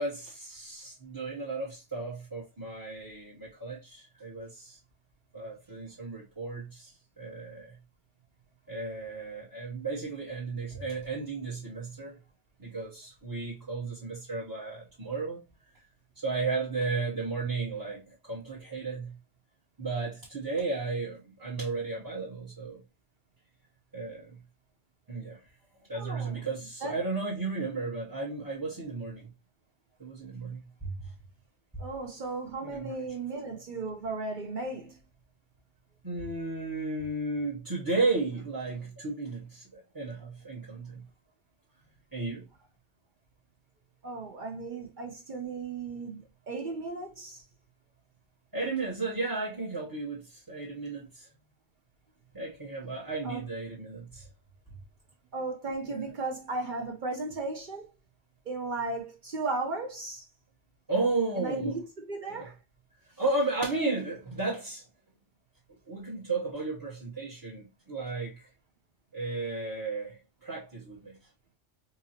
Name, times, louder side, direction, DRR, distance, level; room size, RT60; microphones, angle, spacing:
voice 1, 0.0-4.8 5.3-7.8 8.7-12.2 12.6-15.4 16.1-19.2 19.8-22.8 23.9-24.4 25.1-25.4 25.9-29.3 30.0-31.1 31.7-31.9 32.6-33.1 36.0-41.0 42.1-42.5 48.5-51.3 52.3-54.3 54.7-54.8 55.8-56.1 60.9-61.7 62.3-62.5 63.2-64.8 65.9-68.5 69.1-71.2, right 3 dB, 20° right, 0.8 m, -34 dB
voice 2, 25.9-26.4 26.8-27.0 31.8-35.0 44.0-46.2 46.5-47.4 53.2-53.4 55.3-57.9 58.5-60.2 61.4-62.5, right 3 dB, 50° right, 0.7 m, -35 dB
4.0 x 2.6 x 2.7 m
omnidirectional pair, 1.2 m